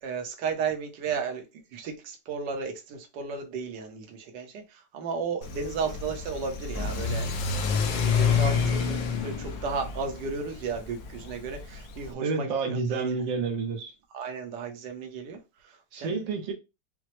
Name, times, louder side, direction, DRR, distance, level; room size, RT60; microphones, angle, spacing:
voice 1, 0.0-1.4 1.7-7.3 7.7-13.0 14.1-16.2, right 5 dB, 70° right, 1.4 m, -34 dB
Car / Accelerating revving vroom, 5.4-12.1, left 6 dB, 75° left, 1.4 m, -29 dB
voice 2, 12.2-13.9 15.9-16.5, right 4 dB, 85° right, 1.5 m, -30 dB
6.0 x 2.0 x 3.0 m
omnidirectional pair, 2.0 m